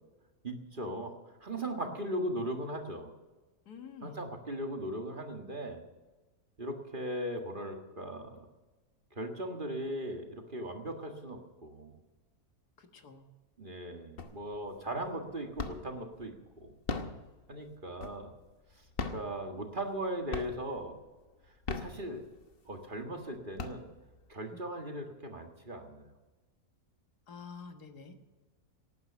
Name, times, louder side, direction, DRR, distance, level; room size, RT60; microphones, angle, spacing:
voice 1, 0.4-3.1 4.0-5.8 6.6-8.5 9.1-12.0 13.6-16.7 17.5-18.3 19.1-21.0 21.7-22.2 22.7-23.9 24.3-26.1, right 1 dB, 35° right, 3 dB, 1.8 m, -38 dB
voice 2, 3.7-4.2 12.8-13.3 24.5-24.6 27.3-28.2, left 5 dB, 85° left, 6 dB, 2.0 m, -48 dB
sound 1, 14.2-14.7 15.0-16.0 16.7-18.4 18.9-20.0 20.3-20.9 21.5-22.5 23.0-23.1 23.4-24.3, left 4 dB, 40° left, 1.2 m, -39 dB
18.0 x 9.6 x 7.0 m, 1.2 s
omnidirectional pair, 1.6 m